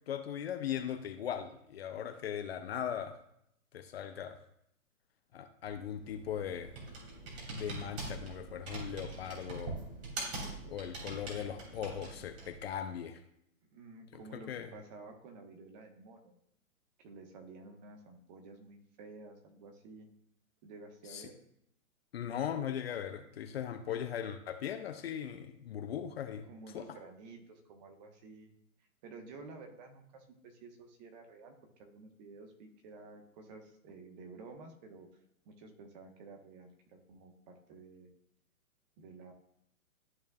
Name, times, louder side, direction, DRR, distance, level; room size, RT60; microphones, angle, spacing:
voice 1, 0.1-3.2 3.7-4.4 5.3-6.7 7.5-9.8 10.7-13.2 14.3-14.7 21.1-21.3 22.1-26.5 26.7-26.9, left 9 dB, 45° left, 8 dB, 0.6 m, -39 dB
Computer keyboard, 5.7-12.6, right 2 dB, 45° right, 2.9 m, -43 dB
voice 2, 13.7-16.4 17.0-20.1 20.6-21.4 26.5-28.5 29.0-31.5 31.8-35.1 35.4-38.1 39.0-39.3, right 3 dB, 30° right, 4 dB, 1.2 m, -52 dB
13.0 x 4.4 x 2.4 m, 0.73 s
hypercardioid pair, 135°, 43 cm